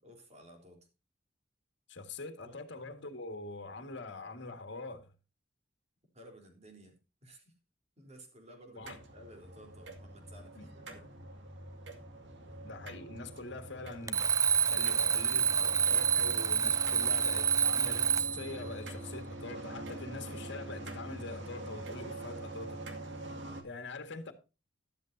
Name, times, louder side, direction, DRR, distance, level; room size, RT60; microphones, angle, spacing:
voice 1, 0.0-0.9 2.4-2.6 6.1-7.5 8.0-11.1, right 1 dB, 35° right, 3.7 m, -55 dB
voice 2, 1.9-5.1 8.8-9.0 10.5-10.7 12.6-22.8 23.6-24.3, left 3 dB, 65° left, 1.9 m, -44 dB
sound 1, 8.8-23.6, right 1 dB, 70° right, 2.2 m, -45 dB
Alarm, 14.1-18.5, right 7 dB, 15° right, 0.5 m, -28 dB
13.5 x 12.0 x 2.7 m
head